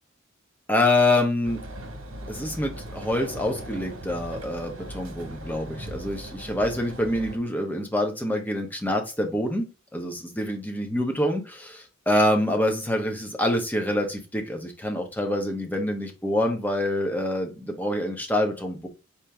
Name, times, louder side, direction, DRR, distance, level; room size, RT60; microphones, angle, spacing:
voice 1, 0.7-1.6 2.3-9.7 9.9-18.9, left 1 dB, 10° left, 3 dB, 0.8 m, -26 dB
sound 1, 1.4-7.4, right 1 dB, 75° right, 1.2 m, -39 dB
4.4 x 2.6 x 3.3 m, 0.31 s
head